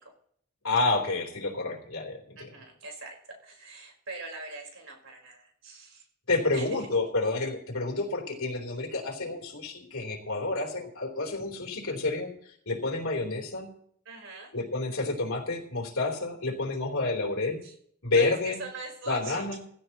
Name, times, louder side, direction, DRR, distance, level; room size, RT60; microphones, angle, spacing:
voice 1, 0.6-2.5 6.3-12.3 12.7-13.7 14.5-17.6 18.0-18.6 19.1-19.6, left 3 dB, 90° left, -1 dB, 3.5 m, -29 dB
voice 2, 2.4-3.2 3.4-6.0 6.5-6.9 14.1-14.5 17.6-17.7 18.1-19.6, right 3 dB, 70° right, 1 dB, 4.4 m, -42 dB
17.0 x 15.5 x 3.0 m, 0.64 s
head